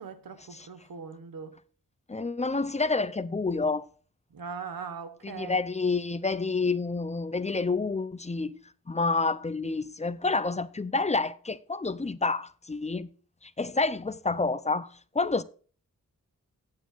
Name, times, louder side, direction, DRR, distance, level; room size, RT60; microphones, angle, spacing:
voice 1, 0.0-1.6 4.3-5.6, right 6 dB, 85° right, 1.5 m, -40 dB
voice 2, 2.1-3.9 5.2-8.5 8.9-13.1 13.4-14.9 15.1-15.4, left 3 dB, 20° left, 0.6 m, -28 dB
15.0 x 9.5 x 2.5 m
wide cardioid pair, 115°, 34 cm